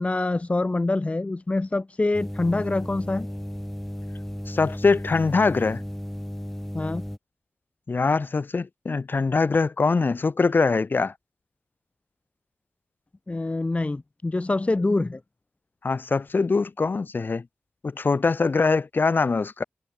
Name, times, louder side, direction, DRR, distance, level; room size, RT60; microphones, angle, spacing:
voice 1, 0.0-3.3 6.7-7.0 13.3-15.2, left 2 dB, 35° left, 1.0 m, -25 dB
sound 1, 2.1-7.2, equal, 5° left, 6.9 m, -34 dB
voice 2, 4.5-5.8 7.9-11.1 15.8-17.4 17.8-19.6, left 4 dB, 55° left, 2.9 m, -23 dB
cardioid pair, 40°, 4 cm